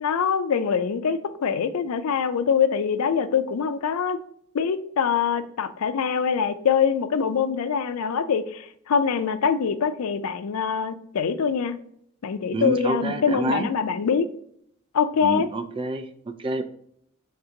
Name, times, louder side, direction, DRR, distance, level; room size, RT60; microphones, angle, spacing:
voice 1, 0.0-4.2 4.5-11.8 12.2-14.3 14.9-15.5, left 6 dB, 90° left, 11 dB, 0.4 m, -24 dB
voice 2, 12.5-13.7 15.2-16.1 16.4-16.6, right 1 dB, 25° right, 7 dB, 0.3 m, -27 dB
5.7 x 3.3 x 2.7 m, 0.68 s
head